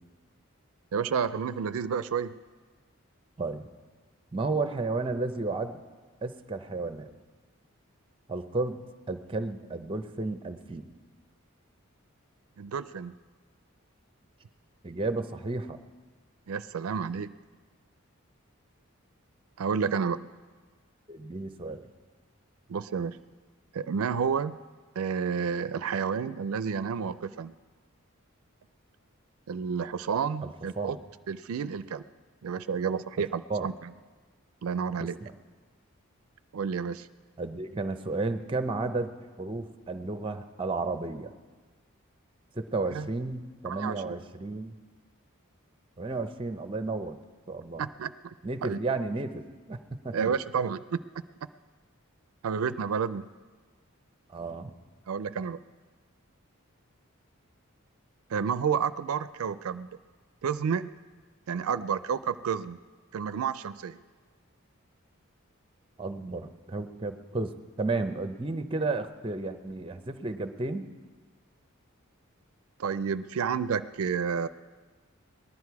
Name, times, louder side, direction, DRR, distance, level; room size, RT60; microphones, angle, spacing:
voice 1, 0.9-2.4 12.6-13.1 16.5-17.3 19.6-20.3 22.7-23.2 23.7-24.6 25.0-27.5 29.5-31.0 31.3-32.0 32.4-33.9 34.6-35.2 36.5-37.1 42.9-43.1 43.7-44.2 47.8-48.3 48.6-48.8 50.1-51.0 52.4-53.3 55.1-55.6 58.3-59.9 60.4-60.9 61.5-62.8 63.1-64.0 72.8-74.5, right 6 dB, 80° right, 14 dB, 0.4 m, -30 dB
voice 2, 3.4-3.7 4.3-5.8 6.2-7.1 8.3-8.8 9.1-10.8 14.8-15.8 21.1-21.9 30.4-30.5 30.8-31.0 33.2-33.7 35.0-35.3 37.4-41.3 42.5-44.7 46.0-47.2 47.5-47.8 48.4-50.3 54.3-54.7 66.0-70.9, right 3 dB, 25° right, 9 dB, 0.6 m, -33 dB
19.5 x 11.5 x 4.7 m, 1.4 s
head